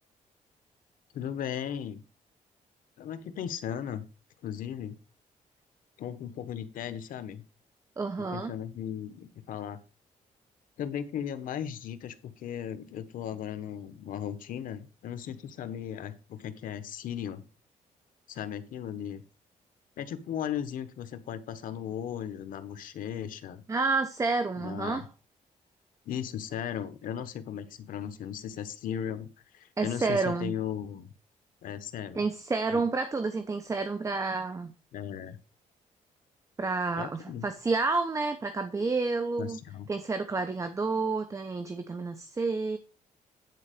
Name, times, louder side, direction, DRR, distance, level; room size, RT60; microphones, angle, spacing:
voice 1, 1.1-2.0 3.0-4.0 4.4-5.0 6.0-7.4 8.2-9.8 10.8-17.5 18.3-19.2 20.0-23.6 24.6-25.1 26.1-31.1 31.6-32.2 32.7-32.8 34.9-35.4 37.0-37.5 39.4-39.9, left 9 dB, 85° left, 11 dB, 1.1 m, -37 dB
voice 2, 8.0-8.5 23.7-25.0 29.8-30.5 32.1-34.7 36.6-39.6 39.9-42.8, right 3 dB, 25° right, 8 dB, 0.8 m, -29 dB
9.8 x 4.5 x 6.6 m, 0.33 s
cardioid pair, 145°, 14 cm